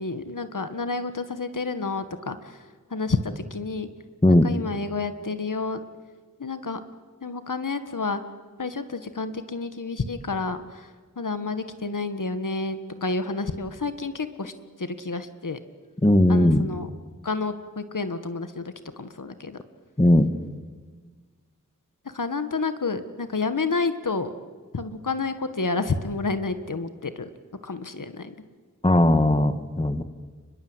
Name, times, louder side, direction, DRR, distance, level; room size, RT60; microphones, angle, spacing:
voice 1, 0.0-2.6 2.9-3.9 4.3-5.8 6.4-6.8 7.2-8.2 8.6-10.9 11.2-14.5 14.8-15.6 16.3-16.9 17.2-19.6 22.0-24.3 24.7-27.3 27.6-28.3, left 3 dB, 75° left, 10 dB, 1.7 m, -30 dB
voice 2, 16.0-16.6 20.0-20.3 28.8-30.0, left 1 dB, 20° left, 10 dB, 1.8 m, -18 dB
29.5 x 21.5 x 8.1 m, 1.5 s
wide cardioid pair, 55°, 32 cm